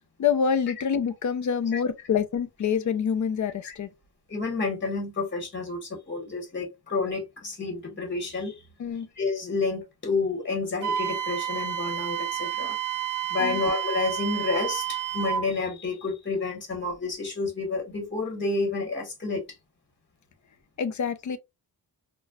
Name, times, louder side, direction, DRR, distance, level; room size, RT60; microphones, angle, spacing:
voice 1, 0.2-3.9 8.8-9.1 13.4-13.6 20.8-21.4, left 7 dB, 50° left, 0.5 m, -26 dB
voice 2, 4.3-8.6 9.2-12.8 13.3-19.4, left 3 dB, 30° left, 1.2 m, -29 dB
Wind instrument woodwind instrument, 10.8-15.5, right 10 dB, 50° right, 0.8 m, -30 dB
4.0 x 2.2 x 2.3 m
wide cardioid pair, 165°, 39 cm